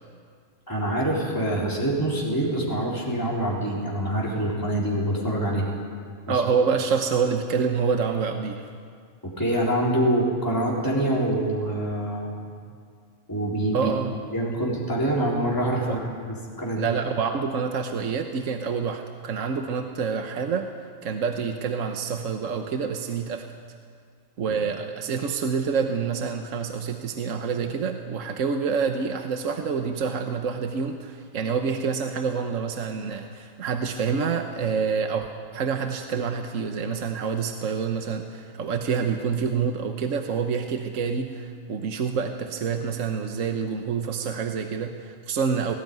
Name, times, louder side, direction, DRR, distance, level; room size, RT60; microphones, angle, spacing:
voice 1, 0.7-5.7 6.3-6.4 9.2-12.4 13.3-13.9 14.3-16.9, right 1 dB, 15° left, -5 dB, 3.9 m, -25 dB
voice 2, 6.3-8.7 13.7-14.1 15.8-16.0 16.8-23.5 24.4-45.8, right 5 dB, 75° right, 5 dB, 1.4 m, -27 dB
19.0 x 18.0 x 9.4 m, 2.1 s
omnidirectional pair, 1.4 m